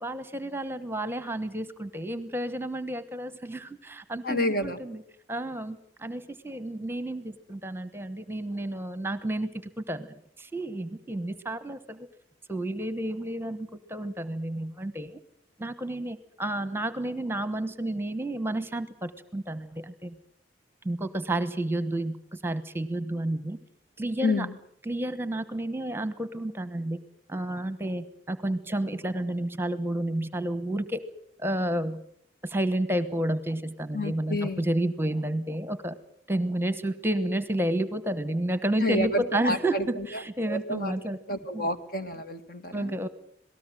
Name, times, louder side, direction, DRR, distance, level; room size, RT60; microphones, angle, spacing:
voice 1, 0.0-5.0 5.3-9.5 9.8-10.1 10.4-12.1 12.5-15.1 15.6-20.2 20.8-23.6 24.0-24.5 24.8-27.0 27.3-31.0 31.4-32.0 32.4-36.0 36.3-41.2 41.5-41.7 42.7-43.1, right 1 dB, 15° right, 12 dB, 1.1 m, -31 dB
voice 2, 4.2-4.8 24.2-24.5 33.9-34.7 38.8-40.9 41.3-42.9, left 1 dB, 55° left, 8 dB, 2.0 m, -29 dB
27.0 x 18.5 x 7.8 m, 0.68 s
head